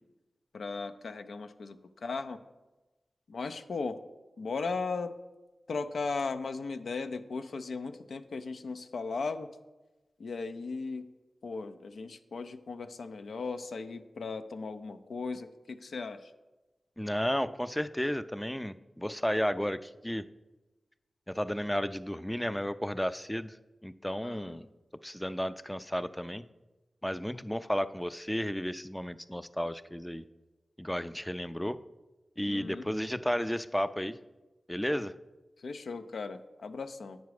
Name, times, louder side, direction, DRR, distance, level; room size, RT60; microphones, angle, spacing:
voice 1, 0.5-2.4 3.3-4.0 4.4-5.1 5.7-9.5 10.2-11.1 11.4-16.3 24.2-24.6 32.5-32.9 35.6-37.2, left 4 dB, 85° left, 9 dB, 0.4 m, -37 dB
voice 2, 17.0-20.3 21.3-23.6 23.8-24.7 25.0-26.5 27.0-30.2 30.8-31.8 32.4-34.2 34.7-35.1, equal, 10° left, 14 dB, 0.3 m, -33 dB
9.2 x 5.0 x 4.8 m, 1.1 s
cardioid pair, 50°, 0 cm